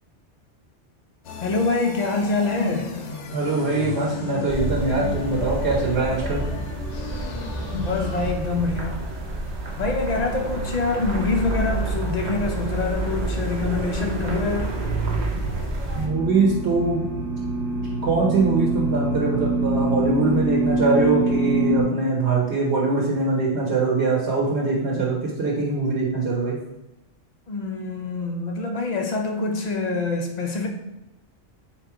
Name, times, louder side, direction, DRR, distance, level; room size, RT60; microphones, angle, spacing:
sound 1, 1.2-8.3, left 4 dB, 80° left, 0.9 m, -34 dB
voice 1, 1.4-2.9 7.7-9.0 9.8-14.7 27.5-30.7, left 3 dB, 50° left, 2 dB, 0.5 m, -25 dB
voice 2, 3.3-6.4 15.9-17.0 18.0-26.6, right 3 dB, 65° right, -3 dB, 1.1 m, -22 dB
sound 2, 4.5-16.1, right 2 dB, 45° right, 0.7 m, -28 dB
sound 3, 15.9-21.8, right 2 dB, 35° left, 0.8 m, -25 dB
3.8 x 3.0 x 4.6 m, 0.93 s
omnidirectional pair, 1.2 m